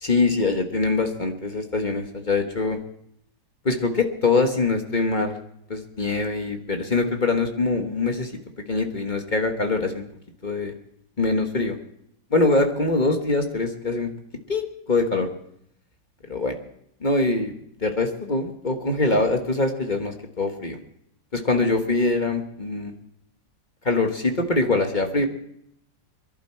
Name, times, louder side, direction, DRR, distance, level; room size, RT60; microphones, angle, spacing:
voice 1, 0.0-2.8 3.6-5.4 5.7-8.3 8.7-10.0 10.4-10.7 11.2-11.8 12.3-14.1 14.5-15.3 16.3-16.5 17.0-17.5 17.8-20.8 21.3-22.9 23.8-25.3, left 3 dB, 30° left, 4 dB, 1.2 m, -23 dB
23.0 x 11.5 x 4.5 m, 0.73 s
omnidirectional pair, 2.0 m